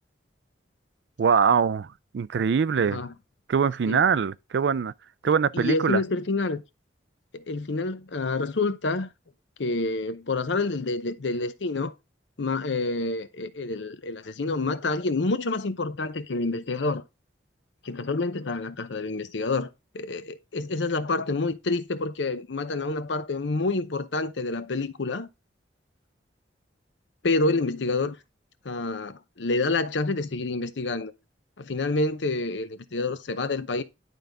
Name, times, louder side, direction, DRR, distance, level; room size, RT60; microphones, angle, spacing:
voice 1, 1.2-3.0 3.5-4.9 5.2-6.0, right 6 dB, 70° right, 0.4 m, -23 dB
voice 2, 5.5-6.6 7.3-9.1 9.6-11.9 12.4-17.0 17.8-19.7 19.9-25.3 27.2-28.2 28.6-31.1 31.6-33.8, left 3 dB, 80° left, 0.7 m, -28 dB
11.0 x 3.9 x 3.5 m
head